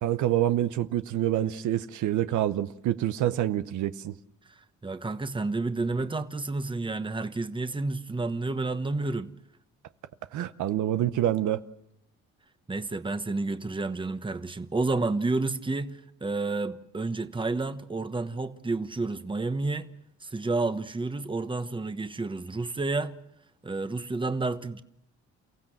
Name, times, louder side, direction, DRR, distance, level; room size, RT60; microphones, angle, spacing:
voice 1, 0.0-4.2 10.3-11.6, right 12 dB, 75° right, 0.9 m, -27 dB
voice 2, 4.5-9.3 12.7-19.9 20.2-23.2 23.6-24.8, right 3 dB, 15° right, 1.2 m, -30 dB
29.5 x 15.5 x 7.6 m
cardioid pair, 90°, 30 cm